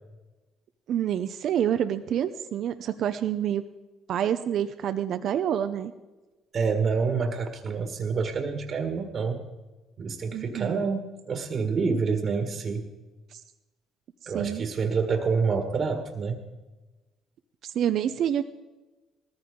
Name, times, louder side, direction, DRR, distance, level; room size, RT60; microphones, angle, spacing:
voice 1, 0.9-3.6 4.1-5.9 10.3-10.8 13.3-13.4 14.2-14.6 17.6-18.4, right 10 dB, 65° right, 9 dB, 0.6 m, -27 dB
voice 2, 6.5-9.4 10.0-12.8 14.3-16.4, right 5 dB, 50° right, 5 dB, 1.7 m, -27 dB
18.5 x 14.5 x 3.8 m, 1.2 s
supercardioid pair, 70°, 0 cm